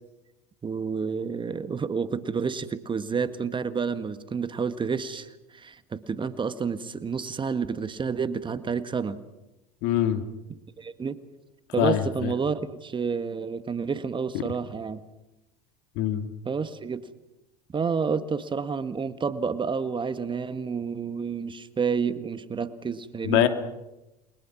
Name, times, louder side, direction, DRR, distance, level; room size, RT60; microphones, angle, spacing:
voice 1, 0.6-9.2 10.5-11.2 11.7-15.0 16.4-17.1 17.7-23.5, right 5 dB, 25° right, 12 dB, 1.6 m, -29 dB
voice 2, 9.8-10.2 11.8-12.3 14.3-14.4 15.9-16.3 23.2-23.5, left 11 dB, 60° left, 8 dB, 2.9 m, -23 dB
30.0 x 23.0 x 6.1 m, 0.98 s
hypercardioid pair, 85°, 20 cm